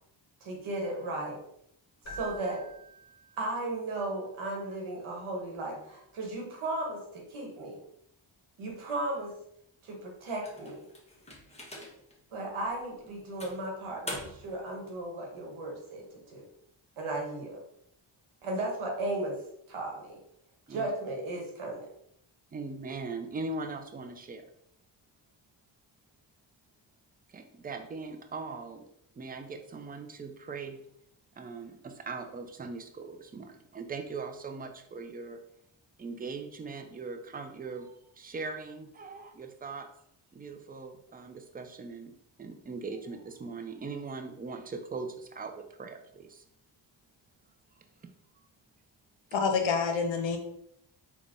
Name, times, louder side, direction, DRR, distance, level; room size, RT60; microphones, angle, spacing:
voice 1, 0.4-1.4 2.1-2.6 3.4-7.8 8.6-9.3 9.8-10.8 12.3-16.4 17.0-17.6 18.4-19.4 19.7-20.2 20.7-21.9, right 2 dB, 85° right, 0 dB, 1.2 m, -35 dB
Keyboard (musical), 2.0-3.9, right 3 dB, 30° left, 1.4 m, -47 dB
sound 1, 10.4-12.2 12.7-12.8 13.4-14.6, left 1 dB, 15° left, 0.9 m, -43 dB
voice 2, 22.5-24.4 27.3-28.8 29.1-30.8 31.4-35.4 36.0-39.9 40.3-46.4 47.8-47.9, right 4 dB, 20° right, 6 dB, 0.4 m, -40 dB
voice 3, 49.3-50.4, left 5 dB, 70° left, 4 dB, 0.8 m, -27 dB
3.8 x 2.3 x 3.6 m, 0.73 s
cardioid pair, 65°, 47 cm